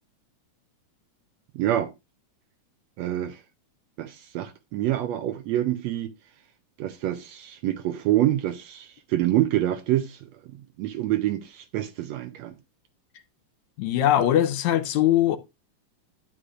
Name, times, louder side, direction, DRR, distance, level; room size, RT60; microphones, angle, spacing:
voice 1, 1.5-1.9 3.0-3.4 4.0-6.1 6.8-10.3 10.8-12.5, right 13 dB, 75° right, 1.7 m, -26 dB
voice 2, 13.8-15.4, left 12 dB, 80° left, 2.0 m, -21 dB
9.9 x 9.5 x 2.4 m
omnidirectional pair, 3.4 m